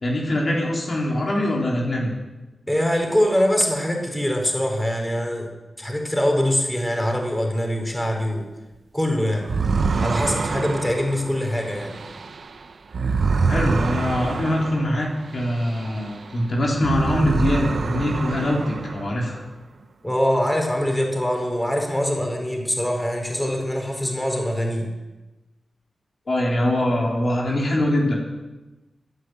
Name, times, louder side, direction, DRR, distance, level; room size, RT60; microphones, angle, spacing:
voice 1, 0.0-2.1 13.5-19.5 26.3-28.2, left 1 dB, 60° left, -2 dB, 3.7 m, -23 dB
voice 2, 2.7-5.5 5.8-8.5 8.9-9.5 10.0-11.9 20.0-24.9, equal, 10° left, 2 dB, 4.6 m, -23 dB
sound 1, 9.4-16.3 16.7-19.4, right 4 dB, 70° right, 1.1 m, -26 dB
14.5 x 10.5 x 7.9 m, 1.1 s
cardioid pair, 40°, 0 cm